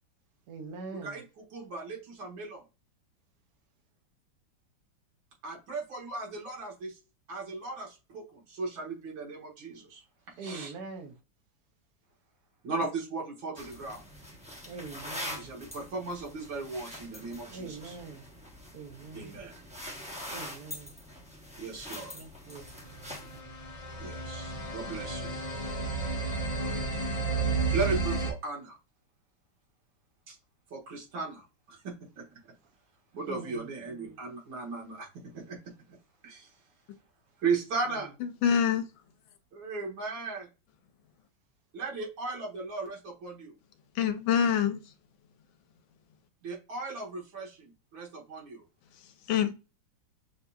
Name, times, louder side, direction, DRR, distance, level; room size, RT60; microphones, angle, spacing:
voice 1, 0.5-1.2 10.4-11.2 14.6-15.5 17.5-18.2 18.7-19.4 20.3-20.9 22.1-22.7 23.3-23.5 33.3-33.7 37.8-38.0, right 4 dB, 60° right, 1.3 m, -44 dB
voice 2, 1.5-2.6 5.4-7.0 7.3-10.0 10.4-10.7 12.6-14.1 15.4-17.9 19.1-19.6 21.6-22.1 24.0-25.4 27.7-28.8 30.3-30.4 30.7-32.3 33.1-35.1 35.3-35.6 36.2-36.5 37.4-38.1 39.5-40.5 41.7-43.5 46.4-48.6, right 3 dB, 80° right, 2.2 m, -36 dB
sound 1, 13.6-23.4, left 1 dB, 5° right, 0.6 m, -44 dB
sound 2, 22.9-28.3, right 4 dB, 40° left, 0.5 m, -32 dB
voice 3, 38.4-38.8 44.0-44.8 49.3-49.5, left 8 dB, 80° left, 1.4 m, -25 dB
6.4 x 2.7 x 2.3 m
omnidirectional pair, 2.2 m